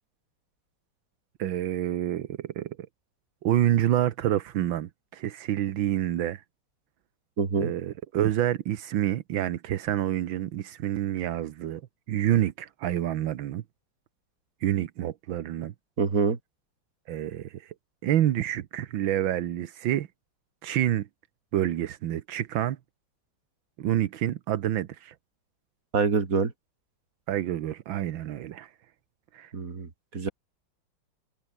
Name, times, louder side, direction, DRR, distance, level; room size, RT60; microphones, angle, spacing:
voice 1, 1.4-2.8 3.4-6.4 7.6-11.8 12.1-13.6 14.6-15.7 17.1-17.7 18.0-20.1 20.6-21.1 21.5-22.8 23.8-25.1 27.3-28.7 29.3-29.5, right 12 dB, 85° right, 1.7 m, -28 dB
voice 2, 7.4-7.7 16.0-16.4 25.9-26.5 29.5-30.3, right 5 dB, 45° right, 2.9 m, -26 dB
omnidirectional pair, 2.1 m